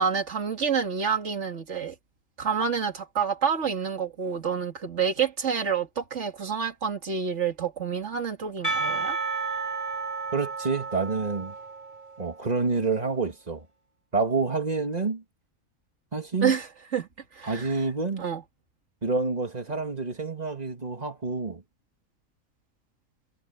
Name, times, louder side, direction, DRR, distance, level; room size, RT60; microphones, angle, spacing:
voice 1, 0.0-1.9 2.4-9.2 16.4-17.8 18.2-18.4, right 6 dB, 55° right, 2.7 m, -28 dB
Percussion, 8.6-12.5, right 4 dB, 25° left, 4.3 m, -32 dB
voice 2, 10.3-11.5 12.2-13.7 14.1-15.2 16.1-16.5 17.4-18.2 19.0-21.6, right 4 dB, 30° right, 2.1 m, -28 dB
omnidirectional pair, 1.5 m